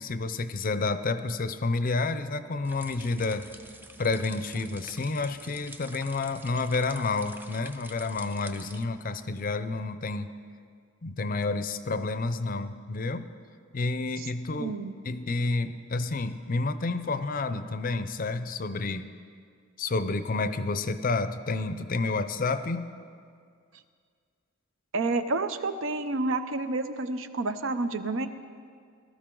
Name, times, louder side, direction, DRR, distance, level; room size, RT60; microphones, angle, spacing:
voice 1, 0.0-3.5 4.0-10.3 11.0-13.3 13.7-14.8 15.0-19.1 19.8-22.9, left 3 dB, 45° left, 11 dB, 0.5 m, -30 dB
sound 1, 2.6-8.8, right 1 dB, 10° right, 0.5 m, -48 dB
voice 2, 14.6-14.9 24.9-28.3, right 3 dB, 70° right, 10 dB, 0.7 m, -29 dB
18.5 x 13.0 x 3.8 m, 2.1 s
head